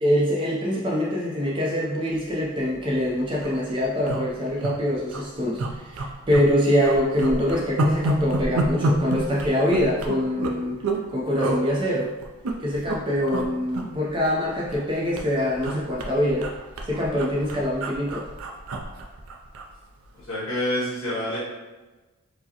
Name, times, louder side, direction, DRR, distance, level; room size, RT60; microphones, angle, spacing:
voice 1, 0.0-5.6 5.9-10.8 11.1-12.1 12.6-16.5 16.8-18.2, equal, 20° right, -4 dB, 0.5 m, -24 dB
sound 1, 2.6-2.8 3.1-3.2 3.3-3.6 4.1-4.7 5.1-5.2 5.6-6.5 6.8-11.0 11.4-11.6 12.2-13.0 13.3-13.5 13.7-14.9 15.2-19.7 20.0-20.2, right 2 dB, 80° right, 0.4 m, -28 dB
voice 2, 20.1-21.4, left 1 dB, 65° left, -10 dB, 1.4 m, -27 dB
4.6 x 2.0 x 2.8 m, 1.2 s
head